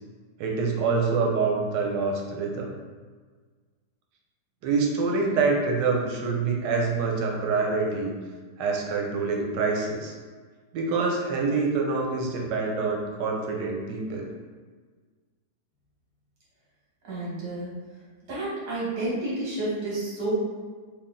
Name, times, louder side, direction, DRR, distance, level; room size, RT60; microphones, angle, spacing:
voice 1, 0.4-2.7 4.6-8.1 8.6-10.1 10.7-14.3, right 4 dB, 90° right, 0 dB, 1.3 m, -26 dB
voice 2, 17.0-17.7 18.3-20.3, right 2 dB, 70° right, -8 dB, 1.9 m, -30 dB
3.4 x 2.3 x 3.7 m, 1.5 s
omnidirectional pair, 1.8 m